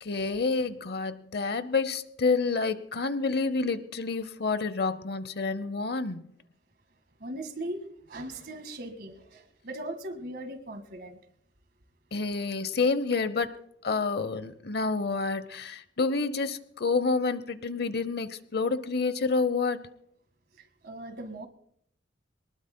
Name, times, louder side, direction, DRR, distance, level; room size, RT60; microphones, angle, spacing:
voice 1, 0.0-6.2 12.1-13.6 13.8-19.9, left 4 dB, 60° left, 0.8 m, -28 dB
voice 2, 7.2-11.2 20.6-21.5, right 1 dB, 60° right, 1.8 m, -39 dB
23.0 x 20.0 x 2.2 m
head